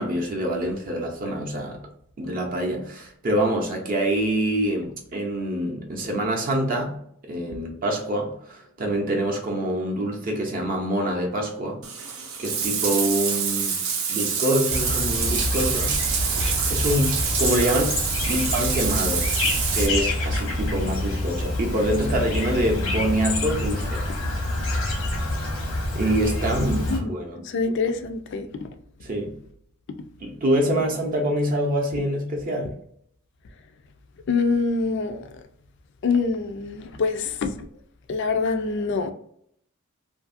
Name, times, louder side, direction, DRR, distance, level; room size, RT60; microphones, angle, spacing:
voice 1, 0.0-1.8 2.2-11.8 12.4-13.8 14.1-16.0 16.7-19.4 19.7-24.0 25.9-27.4 29.0-29.4 30.2-32.7, right 1 dB, 40° right, 0.5 m, -25 dB
Bathtub (filling or washing), 11.8-19.9, right 6 dB, 90° right, 0.5 m, -26 dB
Chirp tweet, 14.7-27.0, left 1 dB, 85° left, 0.9 m, -27 dB
voice 2, 26.6-27.1 27.4-28.7 34.3-35.3 36.0-37.7 38.1-39.1, left 4 dB, 55° left, 0.3 m, -25 dB
2.7 x 2.5 x 2.5 m
head